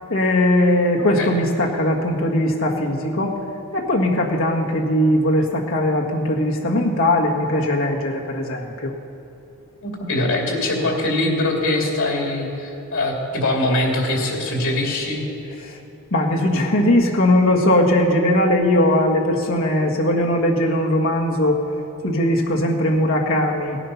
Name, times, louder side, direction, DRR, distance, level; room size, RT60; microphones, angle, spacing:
voice 1, 0.1-3.4 3.7-8.9 15.6-15.8 16.1-21.6 22.0-23.8, left 1 dB, 70° left, -2 dB, 1.6 m, -19 dB
voice 2, 9.8-15.2, left 1 dB, 85° left, 0 dB, 2.6 m, -22 dB
17.5 x 9.9 x 5.8 m, 3.0 s
head